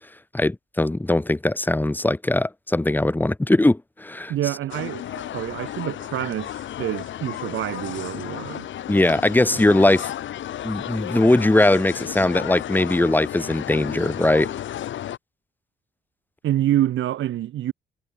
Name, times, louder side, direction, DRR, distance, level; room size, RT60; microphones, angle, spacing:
voice 1, 0.3-4.3 8.9-10.1 10.6-14.5, left 1 dB, 10° left, 1.1 m, -20 dB
voice 2, 4.3-8.7 9.5-9.6 16.4-17.7, right 13 dB, 75° right, 3.2 m, -27 dB
sound 1, 4.7-15.2, left 11 dB, 70° left, 3.5 m, -33 dB
cardioid pair, 90°, 20 cm